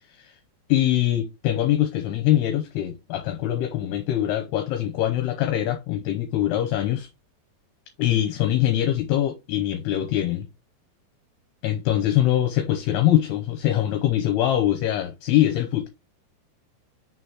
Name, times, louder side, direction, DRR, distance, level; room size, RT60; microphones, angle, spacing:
voice 1, 0.7-7.1 8.0-10.5 11.6-15.9, left 12 dB, 75° left, 2.6 m, -23 dB
6.0 x 4.0 x 4.7 m
omnidirectional pair, 5.1 m